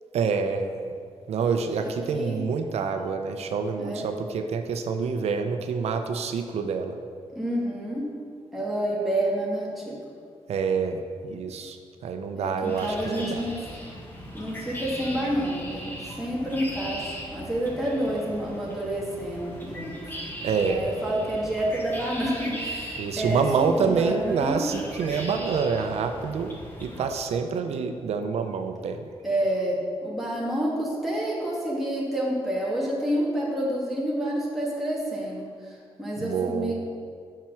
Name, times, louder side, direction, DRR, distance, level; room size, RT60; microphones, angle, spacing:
voice 1, 0.1-0.9 1.3-7.0 10.5-11.8 12.0-13.4 20.4-20.9 23.0-29.1 36.2-36.7, right 5 dB, 85° right, 6 dB, 0.6 m, -27 dB
voice 2, 1.8-2.4 3.8-4.1 7.3-8.1 8.5-10.0 12.3-13.6 14.3-15.9 16.2-19.9 20.6-24.7 29.2-36.7, right 1 dB, ahead, -6 dB, 1.9 m, -29 dB
sound 1, 12.6-27.1, equal, 20° left, 1.7 m, -39 dB
7.4 x 5.9 x 6.1 m, 2.2 s
cardioid pair, 110°, 11 cm